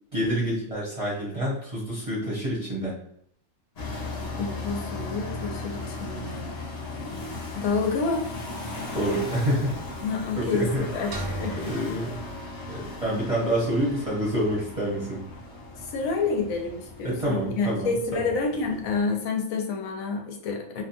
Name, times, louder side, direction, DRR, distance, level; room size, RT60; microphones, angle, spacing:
voice 1, 0.1-3.0 8.9-9.7 10.4-10.9 11.6-12.2 12.7-15.2 17.0-18.2, right 1 dB, 30° right, -6 dB, 0.7 m, -27 dB
sound 1, 3.7-19.0, left 2 dB, 50° left, 0.4 m, -37 dB
voice 2, 4.4-6.5 7.5-8.3 10.0-11.8 15.8-20.8, left 4 dB, 80° left, 2 dB, 1.0 m, -29 dB
sound 2, 11.1-13.1, right 1 dB, 85° right, 1.0 m, -37 dB
2.6 x 2.2 x 2.7 m, 0.66 s
omnidirectional pair, 1.4 m